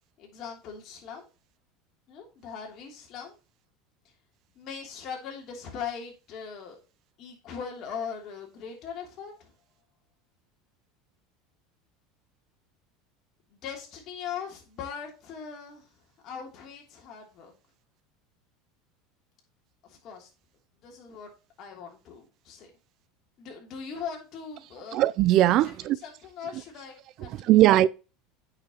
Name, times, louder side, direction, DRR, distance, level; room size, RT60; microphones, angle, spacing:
voice 1, 0.2-1.3 2.1-3.3 4.6-6.8 7.2-9.5 13.5-15.9 16.2-17.5 19.9-20.3 20.8-21.3 21.6-22.7 23.4-25.0 25.6-27.6, left 7 dB, 45° left, 3.0 m, -40 dB
voice 2, 24.9-26.0 27.5-27.9, right 14 dB, 50° right, 0.4 m, -19 dB
8.7 x 5.9 x 3.0 m
supercardioid pair, 125°, 0 cm